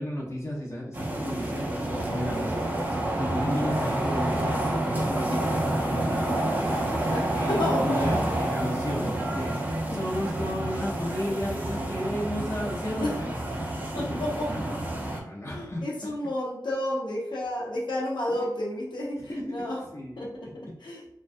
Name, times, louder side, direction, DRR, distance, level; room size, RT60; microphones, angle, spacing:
voice 1, 0.0-2.8 3.2-4.5 4.9-6.6 7.3-9.6 9.9-13.4 13.9-16.1 18.3-18.5 19.2-20.2, equal, 35° left, -4 dB, 0.6 m, -34 dB
sound 1, 0.9-15.2, right 1 dB, 20° right, 0.5 m, -28 dB
voice 2, 7.1-8.1 8.5-8.6 9.9-10.0 13.0-13.1 14.0-14.7 15.5-19.8 20.2-21.0, left 1 dB, 80° left, -4 dB, 0.7 m, -31 dB
2.3 x 2.2 x 2.5 m, 0.78 s
wide cardioid pair, 80°, 8 cm